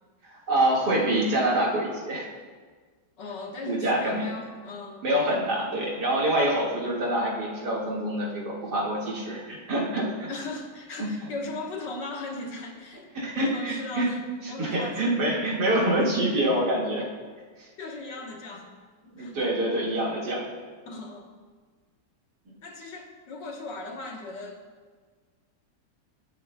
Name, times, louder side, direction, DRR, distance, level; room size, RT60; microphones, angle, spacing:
voice 1, 0.2-2.3 3.6-4.2 5.0-10.3 11.0-11.1 13.1-14.1 14.4-17.0 17.6-17.7 19.1-20.5, right 1 dB, 55° right, -4 dB, 2.4 m, -26 dB
voice 2, 3.2-5.1 10.3-13.1 13.3-15.1 17.8-18.8 19.0-19.4 20.8-21.3 22.6-24.7, left 2 dB, 65° left, 1 dB, 1.7 m, -38 dB
22.0 x 9.1 x 2.2 m, 1.5 s
omnidirectional pair, 2.2 m